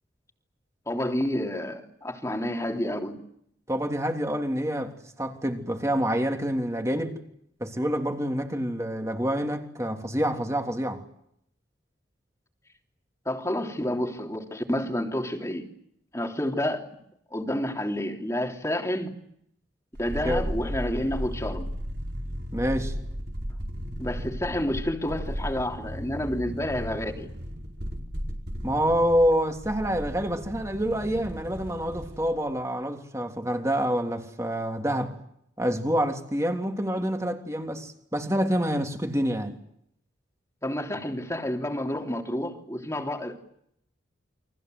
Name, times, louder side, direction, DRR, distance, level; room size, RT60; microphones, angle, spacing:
voice 1, 0.9-3.2 13.2-15.7 16.1-16.9 17.3-19.2 20.0-21.7 24.0-27.3 40.6-43.4, left 1 dB, 15° left, 3.3 m, -29 dB
voice 2, 3.7-7.2 7.6-11.0 20.2-20.5 22.5-22.9 28.6-35.2 35.6-39.6, equal, 15° right, 3.3 m, -27 dB
sound 1, 19.9-32.3 32.6-32.7, equal, 60° right, 5.0 m, -35 dB
30.0 x 24.0 x 8.0 m
head